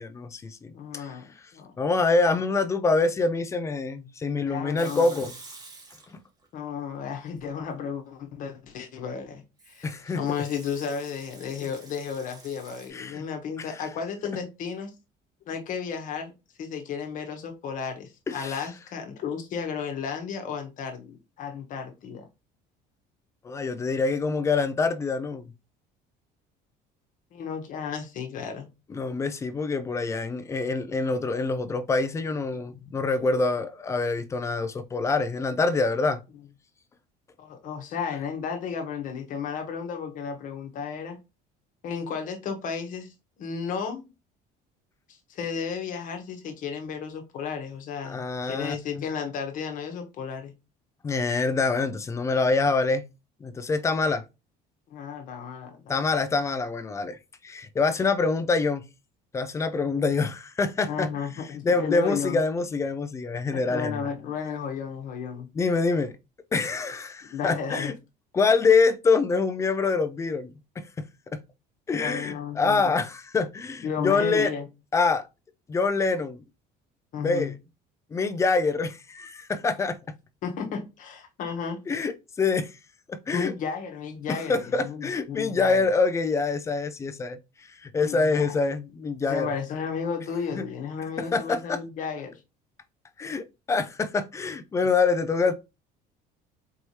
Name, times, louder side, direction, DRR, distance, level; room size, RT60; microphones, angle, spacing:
voice 1, 0.0-1.1 1.8-5.3 9.8-10.2 12.9-13.3 13.6-13.7 18.3-18.6 23.4-25.5 28.9-36.2 48.0-49.1 51.0-53.0 53.4-54.2 55.9-57.2 57.4-58.8 59.3-61.1 61.6-64.0 65.5-66.1 66.5-67.9 68.3-70.8 71.9-74.5 74.9-75.3 75.7-76.4 77.2-77.5 78.1-80.0 81.9-82.1 82.4-82.7 83.1-83.5 84.3-87.4 87.8-89.5 90.6-90.7 91.3-91.8 93.2-95.5, left 4 dB, 15° left, 0.4 m, -25 dB
voice 2, 0.7-1.8 2.3-2.4 4.5-5.3 6.5-14.9 15.5-16.3 16.6-22.3 27.3-28.7 37.4-41.2 41.8-44.1 45.1-50.5 54.9-56.2 60.9-62.4 63.5-65.5 67.3-67.9 72.0-72.9 73.8-74.7 77.1-77.5 80.4-81.8 83.3-85.9 88.0-88.5 89.3-92.4, left 6 dB, 45° left, 1.1 m, -33 dB
Water tap faucet / Sink (filling or washing) / Liquid, 4.8-6.5 6.8-7.5 9.6-12.9, right 3 dB, 20° right, 1.1 m, -48 dB
4.6 x 3.2 x 2.7 m
cardioid pair, 160°, 18 cm